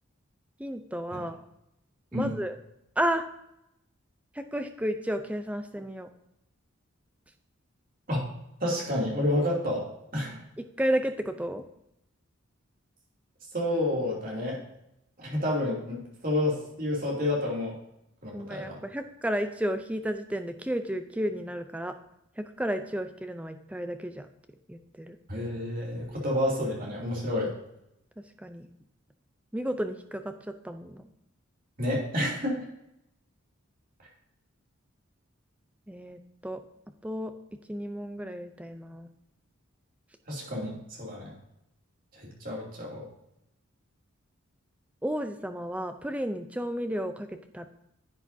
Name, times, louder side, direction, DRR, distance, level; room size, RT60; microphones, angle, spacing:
voice 1, 0.6-1.4 2.1-2.6 3.0-3.2 4.3-6.1 10.6-11.6 18.3-22.0 22.4-24.3 24.7-25.2 26.1-26.2 28.4-28.7 29.5-31.1 35.9-36.6 37.0-37.3 37.7-39.1 45.0-47.7, equal, 5° right, 8 dB, 0.4 m, -32 dB
voice 2, 8.6-10.4 13.5-14.6 15.2-17.7 18.2-18.8 25.3-27.5 31.8-32.6 40.3-41.3 42.1-43.0, left 1 dB, 40° right, -3 dB, 2.8 m, -29 dB
10.5 x 8.4 x 2.7 m, 0.82 s
head